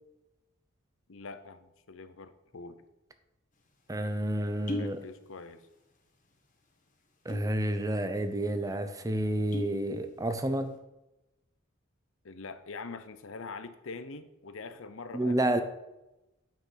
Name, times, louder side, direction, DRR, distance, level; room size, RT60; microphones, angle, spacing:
voice 1, 1.1-2.7 4.8-5.6 8.7-8.8 12.2-15.4, left 4 dB, 70° left, 0.7 m, -44 dB
sound 1, 3.6-3.7 4.5-5.0 5.3-5.9 6.2-6.4 7.1-7.6 8.0-8.1 8.4-8.6 9.3-9.8 10.2-10.6, left 1 dB, 40° left, 1.5 m, -38 dB
voice 2, 3.9-5.0 7.2-10.8 15.1-15.6, right 1 dB, 15° right, 0.6 m, -30 dB
9.0 x 5.7 x 5.8 m
head